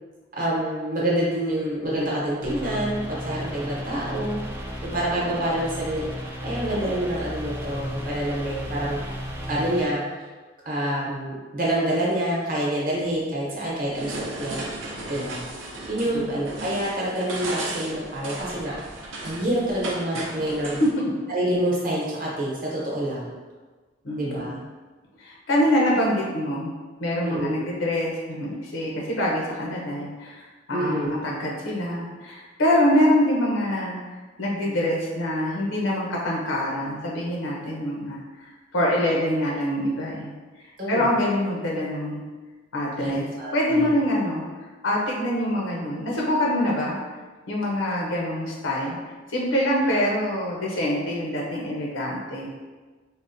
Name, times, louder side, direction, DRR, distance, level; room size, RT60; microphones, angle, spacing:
voice 1, 0.3-4.4 4.8-9.0 9.5-10.0 10.6-14.6 15.1-15.5 15.9-18.7 19.2-20.8 21.3-23.3 24.2-24.5 27.2-27.6 30.7-31.1 40.8-41.1 43.0-43.9, right 1 dB, 45° right, -5 dB, 0.9 m, -27 dB
sound 1, 2.4-9.8, equal, 10° right, 0.3 m, -34 dB
sound 2, 13.9-20.9, right 2 dB, 80° right, 0.6 m, -35 dB
voice 2, 24.0-24.6 25.2-26.7 27.0-33.9 34.4-38.2 38.7-40.3 40.9-42.2 42.7-43.3 43.5-44.4 44.8-47.0 47.5-49.0 49.3-52.5, left 1 dB, 85° left, -3 dB, 0.7 m, -25 dB
3.7 x 2.1 x 2.6 m, 1.3 s
head